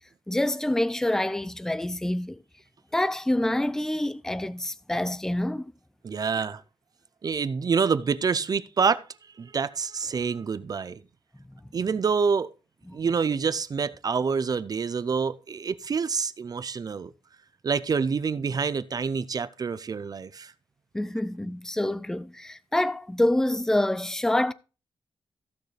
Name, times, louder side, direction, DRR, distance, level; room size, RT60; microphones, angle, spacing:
voice 1, 0.3-2.4 2.9-5.7 12.9-13.0 20.9-24.5, left 1 dB, 5° left, 0.5 m, -26 dB
voice 2, 6.0-6.6 7.2-9.0 9.4-11.0 11.7-12.5 12.9-17.1 17.6-20.5, right 5 dB, 45° right, 0.5 m, -27 dB
15.5 x 6.6 x 3.3 m
wide cardioid pair, 120°, 9 cm